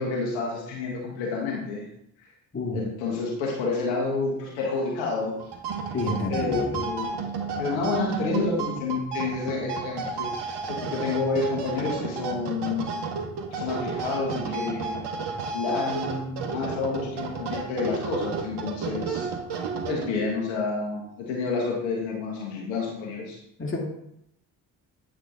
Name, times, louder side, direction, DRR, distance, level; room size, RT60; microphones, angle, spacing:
voice 1, 0.0-1.8 2.7-5.4 6.3-7.2 7.6-12.9 13.5-15.0 15.5-19.3 19.9-23.4, left 3 dB, 80° left, -1 dB, 1.3 m, -29 dB
sound 1, 5.4-20.4, right 5 dB, 60° right, 1.1 m, -32 dB
voice 2, 5.9-6.8 23.6-23.9, left 2 dB, 25° left, 0 dB, 2.0 m, -29 dB
8.1 x 3.6 x 3.7 m, 0.78 s
hypercardioid pair, 40°, 46 cm